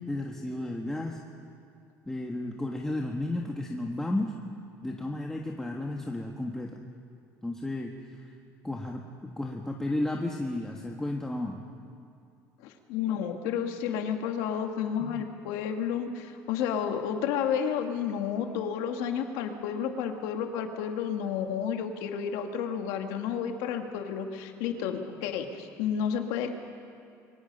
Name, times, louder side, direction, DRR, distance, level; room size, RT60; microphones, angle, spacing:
voice 1, 0.1-1.2 2.1-4.3 4.8-6.8 7.4-7.9 8.6-11.6 15.0-15.2, left 1 dB, 10° left, 0 dB, 1.6 m, -33 dB
voice 2, 12.6-26.5, left 8 dB, 85° left, 4 dB, 2.1 m, -31 dB
27.5 x 23.5 x 5.5 m, 2.4 s
cardioid pair, 120°, 7 cm